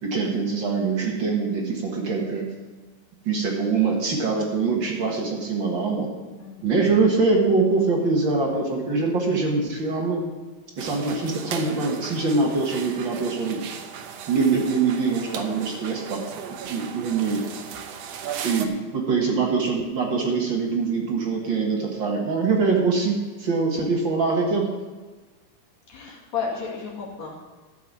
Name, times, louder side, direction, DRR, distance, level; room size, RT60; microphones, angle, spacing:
voice 1, 0.0-2.4 3.2-6.1 6.6-10.2 10.8-13.6 14.3-16.2 16.7-17.4 18.4-24.7, right 4 dB, 45° right, 0 dB, 1.8 m, -23 dB
sound 1, 10.8-18.7, right 7 dB, 70° right, 1.7 m, -36 dB
voice 2, 25.9-27.4, left 6 dB, 60° left, -3 dB, 3.5 m, -32 dB
13.0 x 5.9 x 7.2 m, 1.3 s
omnidirectional pair, 3.5 m